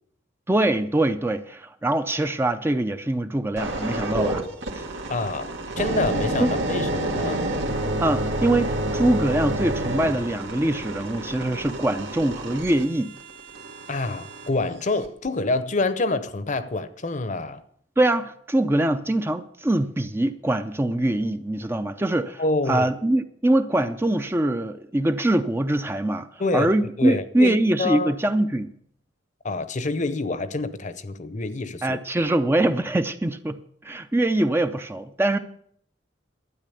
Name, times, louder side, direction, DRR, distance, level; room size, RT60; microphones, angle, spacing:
voice 1, 0.5-4.4 4.7-4.8 6.4-6.5 8.0-13.1 18.0-22.4 22.7-26.3 26.5-28.7 31.8-35.4, right 1 dB, 15° right, 0.5 m, -23 dB
sound 1, 3.6-14.5 15.0-15.3, right 1 dB, 90° right, 2.2 m, -29 dB
voice 2, 5.1-7.5 13.9-17.6 22.4-22.9 26.4-26.7 27.0-28.1 29.4-32.0, left 2 dB, 40° left, 0.8 m, -27 dB
12.5 x 9.1 x 6.9 m
head